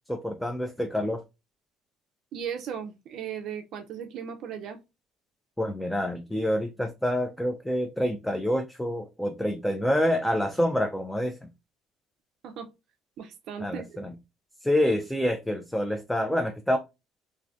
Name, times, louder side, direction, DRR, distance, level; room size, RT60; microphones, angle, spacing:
voice 1, 0.1-1.2 5.6-11.5 13.6-14.1 14.6-16.8, equal, 5° left, 0.3 m, -27 dB
voice 2, 2.3-4.8 12.4-12.7 13.2-14.0, right 8 dB, 65° right, 0.4 m, -37 dB
2.6 x 2.4 x 3.3 m
cardioid pair, 120°, 0 cm